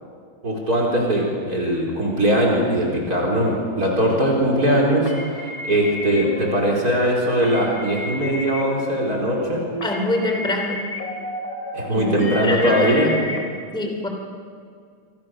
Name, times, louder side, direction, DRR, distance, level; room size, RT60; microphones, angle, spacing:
voice 1, 0.4-9.6 11.7-13.1, right 1 dB, 50° right, -2 dB, 4.8 m, -20 dB
sound 1, 3.9-13.4, left 2 dB, 80° left, 3.7 m, -31 dB
voice 2, 9.8-10.9 11.9-13.1 13.7-14.1, left 1 dB, ahead, 3 dB, 2.8 m, -25 dB
26.5 x 26.0 x 6.5 m, 2.2 s
omnidirectional pair, 2.1 m